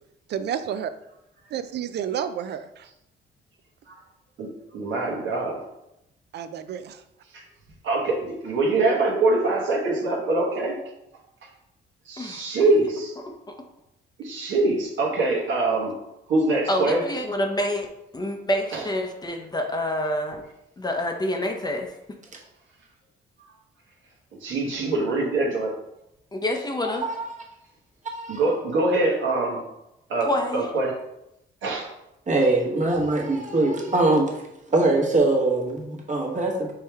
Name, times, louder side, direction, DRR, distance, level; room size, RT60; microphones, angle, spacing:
voice 1, 0.3-0.9 1.5-2.9 6.3-7.0, right 9 dB, 60° right, 11 dB, 0.4 m, -30 dB
voice 2, 4.7-5.6 7.3-7.4 7.8-10.7 12.0-13.1 14.2-15.9 16.3-17.0 18.7-18.8 24.4-25.7 28.3-29.6 30.1-31.0 31.6-31.9, right 2 dB, 75° right, -3 dB, 1.1 m, -24 dB
voice 3, 16.7-17.9 18.1-20.4 20.8-21.9 26.3-27.1 30.2-30.7, left 1 dB, 20° left, 4 dB, 0.6 m, -27 dB
voice 4, 26.8-27.3 28.0-28.4 32.3-34.3 34.7-36.7, right 2 dB, 40° right, -1 dB, 1.2 m, -22 dB
4.6 x 3.2 x 3.4 m, 0.86 s
cardioid pair, 90°, 20 cm